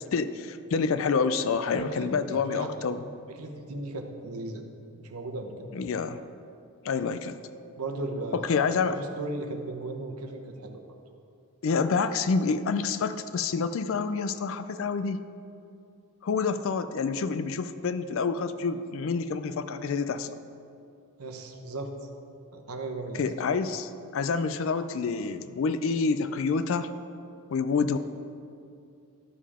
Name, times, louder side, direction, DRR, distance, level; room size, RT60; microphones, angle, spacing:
voice 1, 0.1-3.1 5.7-6.2 6.8-7.4 8.3-9.0 11.6-15.3 16.2-20.4 23.1-26.9 27.5-28.0, left 5 dB, 60° left, 12 dB, 0.4 m, -28 dB
voice 2, 1.7-2.7 3.3-4.6 5.0-5.7 7.8-8.5 8.9-10.8 21.2-21.9 22.5-23.2, right 2 dB, 80° right, 4 dB, 1.0 m, -36 dB
12.5 x 5.6 x 4.9 m, 2.5 s
head